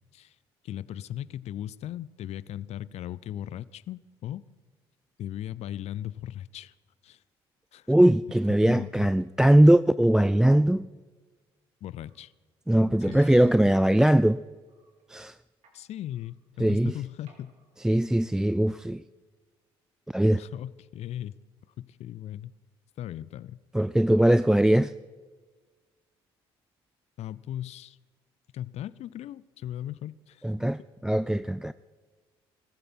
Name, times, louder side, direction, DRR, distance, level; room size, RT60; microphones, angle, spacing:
voice 1, 0.6-4.5 5.2-6.7 7.0-7.2 7.7-7.9 8.6-9.1 11.8-12.3 13.1-13.2 15.7-17.5 20.3-21.4 21.8-22.5 23.0-23.6 27.2-28.0 28.5-30.5, left 12 dB, 60° left, 0.5 m, -38 dB
voice 2, 7.9-10.9 12.7-14.4 15.1-15.4 16.6-16.9 17.8-19.0 20.1-20.4 23.7-24.9 30.4-31.7, right 1 dB, 5° right, 0.4 m, -21 dB
sound 1, 11.9-12.2 12.9-14.1 14.7-15.0 15.6-15.8 16.1-16.3 17.3-17.7, right 1 dB, 65° right, 4.3 m, -56 dB
20.0 x 15.0 x 4.4 m
hypercardioid pair, 60°, 13 cm